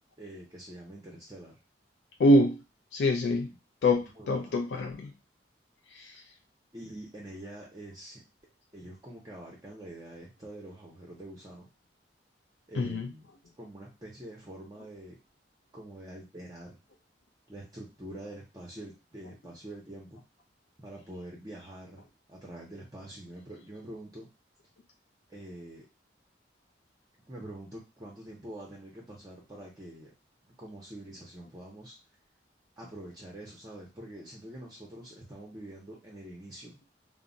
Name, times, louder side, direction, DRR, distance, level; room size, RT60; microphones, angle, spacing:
voice 1, 0.2-1.6 4.2-4.5 6.7-8.2 8.7-11.7 12.7-13.3 13.6-15.2 15.7-16.8 17.5-20.2 20.8-24.3 25.3-25.9 27.3-30.1 30.4-31.9 32.8-36.8, right 1 dB, 20° right, -3 dB, 0.6 m, -45 dB
voice 2, 2.2-2.6 2.9-3.5 3.8-5.1 5.9-6.2 12.7-13.1, left 1 dB, 70° left, 2 dB, 0.3 m, -25 dB
2.2 x 2.0 x 3.7 m, 0.27 s
head